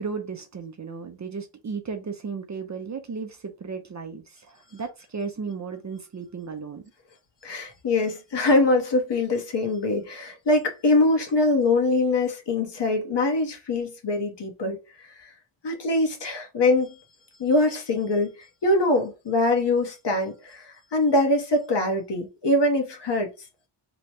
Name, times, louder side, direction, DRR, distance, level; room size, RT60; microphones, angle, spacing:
voice 1, 0.0-6.8, right 5 dB, 35° right, 0.6 m, -35 dB
voice 2, 7.4-15.3 15.6-16.9 17.4-18.3 18.6-23.3, left 2 dB, 55° left, 1.1 m, -23 dB
3.0 x 2.2 x 4.2 m
wide cardioid pair, 90°, 50 cm